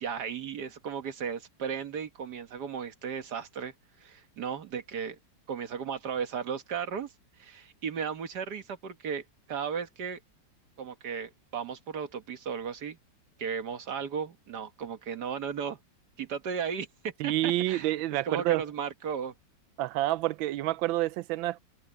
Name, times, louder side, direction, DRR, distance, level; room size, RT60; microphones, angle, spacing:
voice 1, 0.0-5.2 5.5-10.2 10.8-13.0 13.4-15.8 16.2-17.9 18.3-19.3, right 7 dB, 60° right, 1.9 m, -35 dB
voice 2, 17.2-18.6 19.8-21.6, right 16 dB, 90° right, 1.4 m, -28 dB
omnidirectional pair, 2.1 m